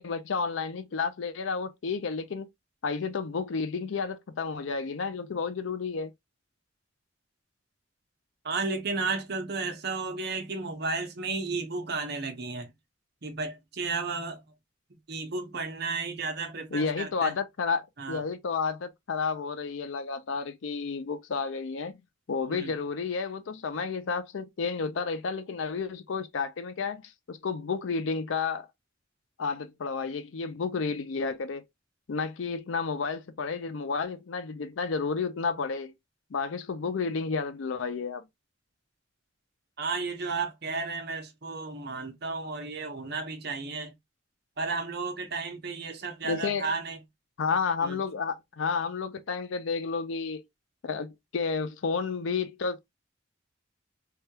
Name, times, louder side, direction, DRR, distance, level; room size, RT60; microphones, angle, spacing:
voice 1, 0.0-2.5 2.8-6.1 16.7-21.9 22.3-28.7 29.4-31.6 32.1-35.9 36.3-38.3 46.2-46.7 47.4-50.4 50.8-52.9, left 5 dB, 80° left, 0.5 m, -31 dB
voice 2, 8.4-12.7 13.2-14.4 14.9-17.4 18.0-18.2 22.5-22.7 39.8-43.9 44.6-47.0 47.8-48.0, right 4 dB, 55° right, 0.8 m, -33 dB
3.3 x 2.3 x 2.8 m
head